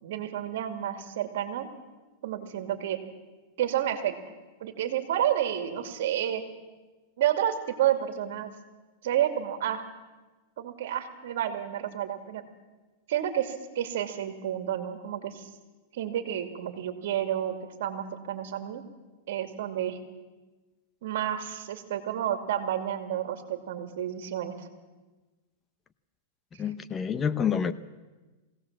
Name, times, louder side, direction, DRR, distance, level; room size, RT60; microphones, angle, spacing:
voice 1, 0.0-1.7 2.2-3.0 3.6-4.2 4.6-6.4 7.2-8.5 9.0-9.8 10.6-12.4 13.1-15.5 15.9-18.8 19.3-20.0 21.0-24.7, right 11 dB, 70° right, 8 dB, 2.5 m, -30 dB
voice 2, 26.6-27.7, left 7 dB, 20° left, 13 dB, 0.8 m, -27 dB
22.0 x 17.0 x 7.5 m, 1.2 s
hypercardioid pair, 135°, 0 cm